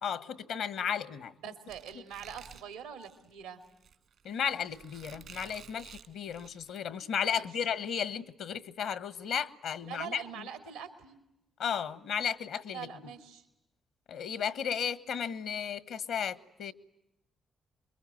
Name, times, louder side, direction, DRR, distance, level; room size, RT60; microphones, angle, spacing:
voice 1, 0.0-1.5 4.2-10.5 11.6-12.9 14.1-16.7, left 7 dB, 75° left, 1.4 m, -34 dB
voice 2, 1.4-3.6 7.1-7.5 9.8-11.2 12.7-13.5, right 8 dB, 90° right, 2.6 m, -44 dB
Squeak, 1.7-6.8, right 7 dB, 70° right, 1.9 m, -52 dB
27.5 x 23.0 x 9.2 m
hypercardioid pair, 40°, 0 cm